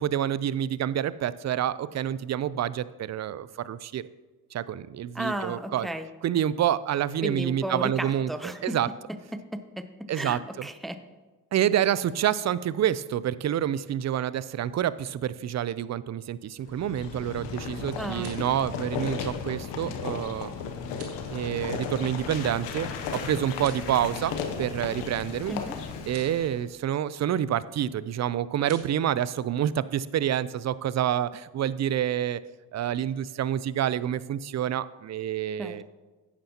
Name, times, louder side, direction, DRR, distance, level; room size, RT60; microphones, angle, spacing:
voice 1, 0.0-4.0 4.5-5.9 6.2-8.3 8.6-8.9 10.1-10.7 11.5-20.5 21.3-25.5 26.1-32.4 32.7-35.8, right 10 dB, 45° right, 17 dB, 0.4 m, -28 dB
voice 2, 5.1-6.1 7.2-8.7 9.3-9.9 10.1-11.0 18.0-18.4 25.5-25.8 35.6-35.8, right 1 dB, ahead, 9 dB, 0.7 m, -34 dB
sound 1, 16.6-26.6, left 6 dB, 90° left, 0.9 m, -35 dB
sound 2, 18.0-18.5 20.8-21.2 23.5-24.0 26.0-26.3 28.6-28.9, right 5 dB, 80° right, 1.8 m, -48 dB
11.0 x 8.9 x 2.9 m, 1.3 s
supercardioid pair, 60°, 41 cm